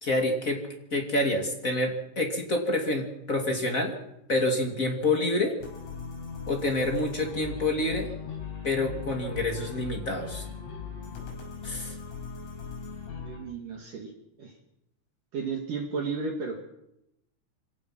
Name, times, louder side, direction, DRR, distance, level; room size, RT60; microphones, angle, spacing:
voice 1, 0.0-0.6 0.9-3.9 4.3-5.6 6.5-8.1 8.6-10.4 11.6-11.9, left 2 dB, 30° left, 2 dB, 1.5 m, -27 dB
sound 1, 5.6-13.4, left 6 dB, 85° left, 8.4 m, -39 dB
voice 2, 13.2-14.1 14.4-14.6 15.3-16.6, right 4 dB, 50° right, 2 dB, 2.9 m, -33 dB
26.5 x 17.5 x 6.0 m, 0.83 s
omnidirectional pair, 5.8 m